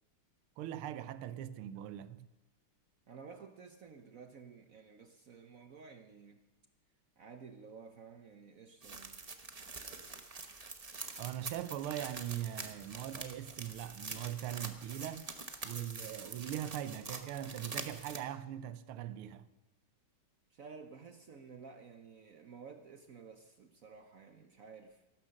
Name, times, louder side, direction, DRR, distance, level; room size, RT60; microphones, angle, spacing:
voice 1, 0.6-2.3 11.2-15.3 15.6-19.5, right 12 dB, 90° right, 1.6 m, -41 dB
voice 2, 3.1-6.4 7.2-9.2 20.5-25.1, right 5 dB, 60° right, 0.9 m, -53 dB
sound 1, 8.8-18.2, right 4 dB, 40° right, 0.5 m, -45 dB
13.5 x 12.5 x 6.4 m
omnidirectional pair, 2.3 m